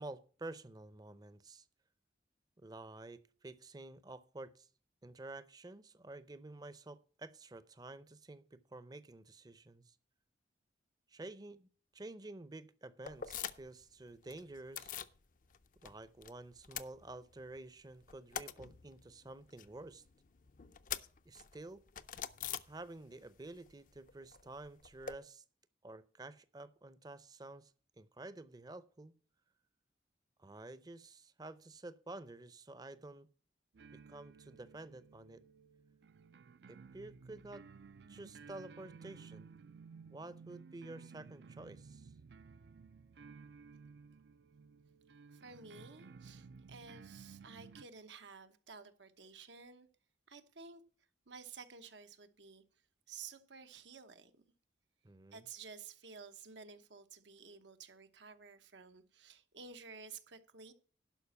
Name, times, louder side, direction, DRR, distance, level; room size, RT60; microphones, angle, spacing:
voice 1, 0.0-1.7 2.6-4.7 5.0-10.0 11.1-15.0 15.8-20.0 21.3-21.8 22.7-25.4 25.8-27.7 28.0-29.1 30.4-33.3 33.9-35.4 36.7-37.7 38.1-39.5 40.1-42.1 55.0-55.4, right 2 dB, 20° right, 0.6 m, -50 dB
sound 1, 13.0-13.8 14.1-15.2 15.5-16.3 16.6-17.6 17.9-23.3 23.5-25.1, left 9 dB, 45° left, 0.5 m, -45 dB
sound 2, 33.7-47.8, right 5 dB, 70° right, 0.5 m, -56 dB
voice 2, 45.3-49.9 50.3-50.8 51.3-52.6 53.1-54.3 55.3-60.7, right 5 dB, 90° right, 1.1 m, -53 dB
11.5 x 5.1 x 7.0 m
head